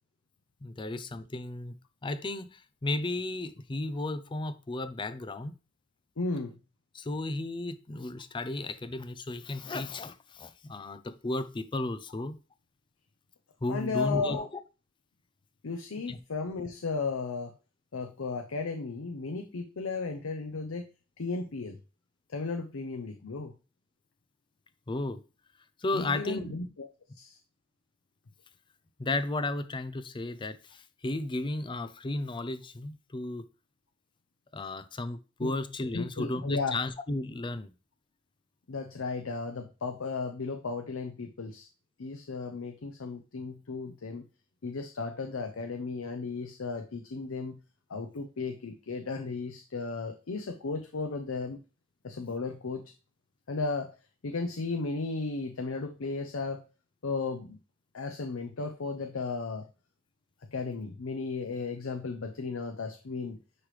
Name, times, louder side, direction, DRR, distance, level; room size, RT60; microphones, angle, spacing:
voice 1, 0.6-5.5 6.9-12.4 13.6-14.5 16.1-16.2 24.9-25.2 25.8-26.6 29.0-33.4 34.5-37.7, left 2 dB, 25° left, 0.5 m, -34 dB
voice 2, 6.2-6.6 13.7-14.5 15.6-17.5 17.9-20.9 21.2-21.8 22.3-23.5 25.9-26.9 27.1-27.4 35.4-35.5 35.9-36.8 38.7-41.7 42.0-44.2 44.6-47.6 47.9-51.6 52.0-52.9 53.5-54.0 54.2-56.6 57.0-57.6 57.9-59.7 60.5-63.4, left 4 dB, 90° left, 0.6 m, -35 dB
9.7 x 3.2 x 3.2 m
head